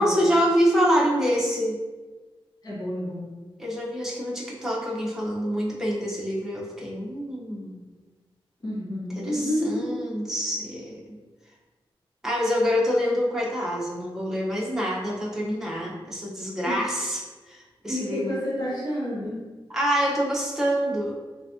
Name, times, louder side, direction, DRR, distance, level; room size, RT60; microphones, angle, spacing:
voice 1, 0.0-1.8 3.6-7.8 9.2-11.2 12.2-17.2 17.5-18.3 19.7-21.2, equal, 5° right, -6 dB, 1.0 m, -26 dB
voice 2, 2.6-3.3 8.6-9.9 16.6-16.7 17.9-19.4, equal, 45° left, -8 dB, 1.4 m, -29 dB
3.4 x 3.0 x 2.8 m, 1.3 s
cardioid pair, 75°, 10 cm